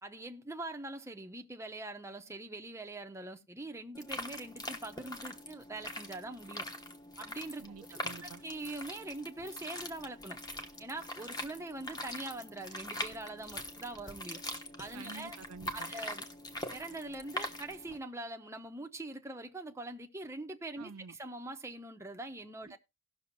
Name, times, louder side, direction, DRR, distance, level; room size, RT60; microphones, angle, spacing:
voice 1, 0.0-6.7 7.2-7.7 8.2-10.4 10.8-14.4 14.8-15.4 15.7-16.3 16.7-22.8, right 2 dB, 15° right, 0.8 m, -43 dB
sound 1, 3.9-18.0, left 1 dB, 20° left, 1.2 m, -43 dB
voice 2, 7.6-8.4 14.9-15.9 20.8-21.2 22.7-22.8, right 4 dB, 80° right, 0.5 m, -49 dB
18.5 x 6.3 x 2.6 m
head